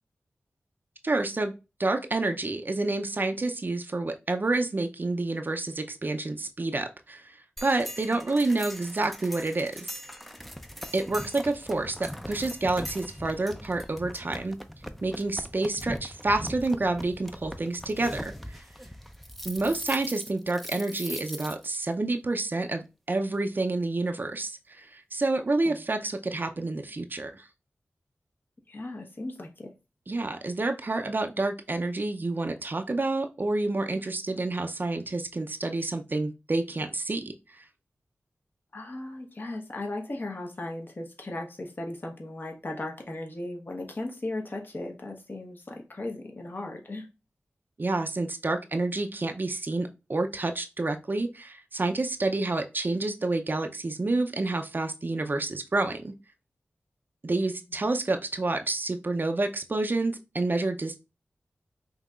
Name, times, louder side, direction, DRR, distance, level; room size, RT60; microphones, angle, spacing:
voice 1, 1.0-1.5 1.8-10.0 10.9-14.6 15.0-18.6 19.4-27.5 30.1-37.2 37.6-37.7 47.8-56.1 57.2-61.0, right 2 dB, 45° right, 0.5 m, -29 dB
sound 1, 7.6-21.8, equal, ahead, 0.5 m, -41 dB
voice 2, 28.7-29.7 38.7-47.1, left 2 dB, 45° left, 1.1 m, -37 dB
5.5 x 2.8 x 2.4 m
cardioid pair, 55°, 5 cm